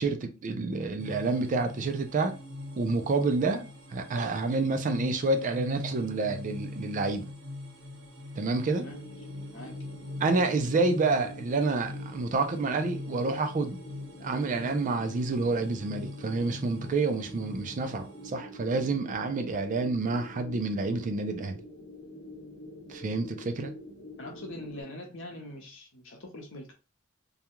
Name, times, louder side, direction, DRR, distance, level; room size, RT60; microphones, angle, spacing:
voice 1, 0.0-2.4 2.8-7.3 8.4-8.9 10.2-13.8 14.2-21.6 22.9-23.7, right 3 dB, 40° right, 0.4 m, -28 dB
sound 1, 1.0-18.3, left 2 dB, 90° right, 1.0 m, -42 dB
voice 2, 8.7-9.1 9.5-9.8 24.2-26.7, left 1 dB, 65° left, 0.8 m, -43 dB
sound 2, 8.7-24.8, equal, 40° left, 1.0 m, -47 dB
2.3 x 2.2 x 2.9 m
head